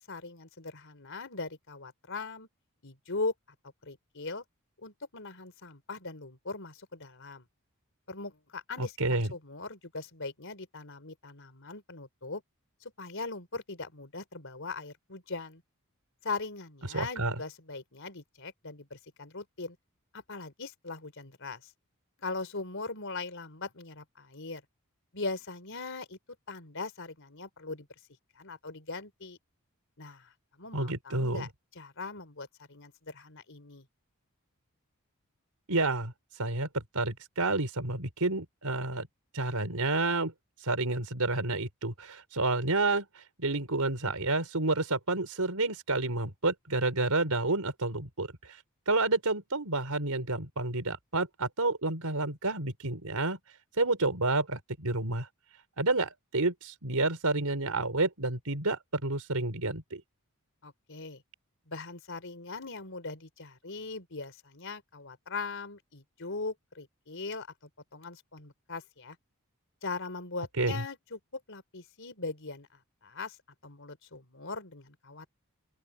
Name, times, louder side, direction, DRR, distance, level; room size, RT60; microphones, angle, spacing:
voice 1, 0.0-2.5 2.8-3.3 3.8-4.4 4.8-7.4 8.1-12.4 12.8-15.6 16.2-19.8 20.1-21.7 22.2-24.6 25.1-26.2 26.5-27.9 28.4-29.4 30.0-33.8 60.6-61.2 61.7-67.5 67.9-69.2 69.8-72.7 73.0-73.4 73.6-75.3, left 3 dB, 60° left, 4.1 m, -40 dB
voice 2, 8.8-9.3 16.9-17.3 30.7-31.5 35.7-39.1 39.3-40.3 40.6-53.4 53.8-55.3 55.8-60.0 70.6-70.8, right 2 dB, 80° right, 4.3 m, -30 dB
open air
head